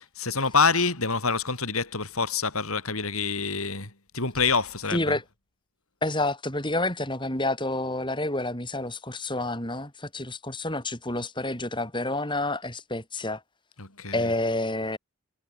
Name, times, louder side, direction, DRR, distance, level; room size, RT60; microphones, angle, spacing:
voice 1, 0.0-5.2 13.8-14.3, left 4 dB, 75° left, 6.0 m, -26 dB
voice 2, 4.9-5.2 6.0-13.4 14.1-15.0, left 2 dB, 20° left, 6.7 m, -29 dB
head